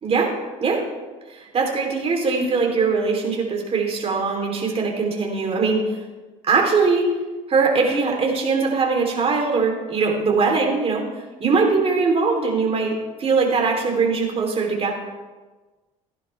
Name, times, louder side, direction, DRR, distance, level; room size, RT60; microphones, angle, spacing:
voice 1, 0.0-0.3 0.6-0.9 1.3-5.8 6.5-7.0 7.5-11.1 11.4-14.9, right 4 dB, 40° right, 1 dB, 3.3 m, -21 dB
16.5 x 11.0 x 3.4 m, 1.2 s
supercardioid pair, 95°, 16 cm